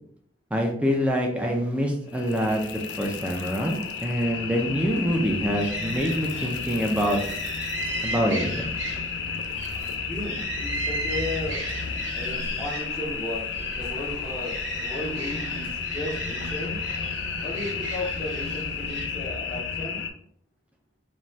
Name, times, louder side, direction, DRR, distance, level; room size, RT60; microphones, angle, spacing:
voice 1, 0.5-7.2 8.0-8.8, equal, 5° right, 1 dB, 0.3 m, -25 dB
sound 1, 2.1-20.1, left 6 dB, 70° left, 0.3 m, -32 dB
sound 2, 4.8-19.1, right 3 dB, 90° right, 0.5 m, -37 dB
voice 2, 10.1-11.6 12.1-16.8 17.4-20.0, left 1 dB, 25° left, -8 dB, 0.6 m, -35 dB
2.6 x 2.2 x 3.1 m, 0.64 s
head